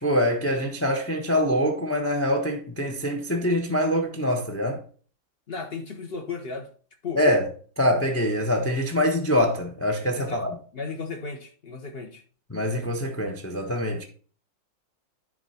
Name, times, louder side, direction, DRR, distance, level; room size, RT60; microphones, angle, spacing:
voice 1, 0.0-4.8 7.2-7.4 7.8-10.5 12.5-14.0, equal, 15° left, 0.4 m, -24 dB
voice 2, 5.5-6.7 7.0-7.2 10.2-10.4 10.7-12.2, left 4 dB, 40° left, 1.0 m, -34 dB
10.5 x 3.8 x 4.2 m
omnidirectional pair, 2.0 m